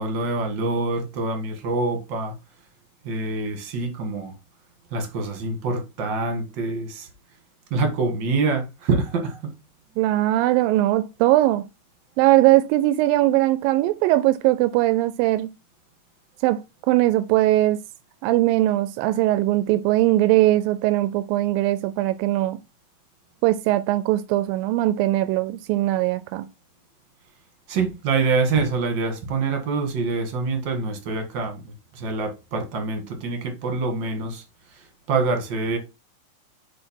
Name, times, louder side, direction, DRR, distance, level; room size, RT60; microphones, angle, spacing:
voice 1, 0.0-2.3 3.0-4.3 4.9-7.1 7.7-9.5 27.7-34.4 34.7-35.8, right 3 dB, 45° right, 1.7 m, -25 dB
voice 2, 10.0-11.6 12.2-15.5 16.4-17.8 18.2-22.6 23.4-26.5, right 16 dB, 85° right, 2.3 m, -20 dB
6.5 x 4.2 x 4.5 m
omnidirectional pair, 4.0 m